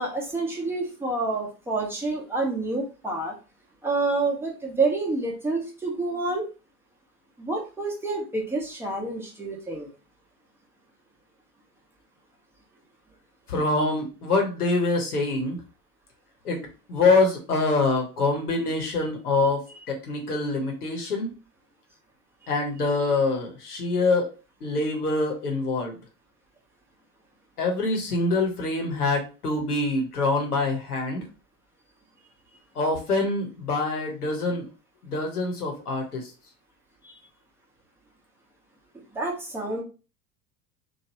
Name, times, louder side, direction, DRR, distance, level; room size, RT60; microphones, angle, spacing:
voice 1, 0.0-3.3 3.8-6.5 7.4-9.9 22.4-22.5 37.0-37.1 39.1-39.8, right 3 dB, 5° right, -1 dB, 0.8 m, -28 dB
voice 2, 13.5-15.6 16.4-16.6 16.9-19.6 19.9-21.3 22.5-24.3 24.6-26.0 27.6-31.2 32.7-34.6 35.0-36.3, left 3 dB, 75° left, 1 dB, 1.0 m, -25 dB
3.1 x 2.2 x 2.9 m, 0.32 s
figure-of-eight pair, 80°, 46 cm